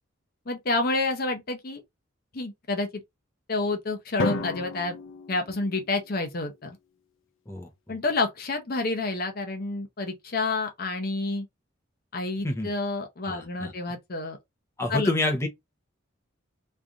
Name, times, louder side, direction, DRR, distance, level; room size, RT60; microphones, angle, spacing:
voice 1, 0.5-1.8 2.3-3.0 3.5-5.0 5.3-6.8 7.9-11.5 12.1-14.4 14.9-15.1, left 3 dB, 50° left, 0.7 m, -29 dB
Drum, 4.2-6.3, left 3 dB, 80° left, 0.6 m, -32 dB
voice 2, 13.2-13.7 14.8-15.5, left 2 dB, 15° left, 0.8 m, -27 dB
3.2 x 2.6 x 3.5 m
head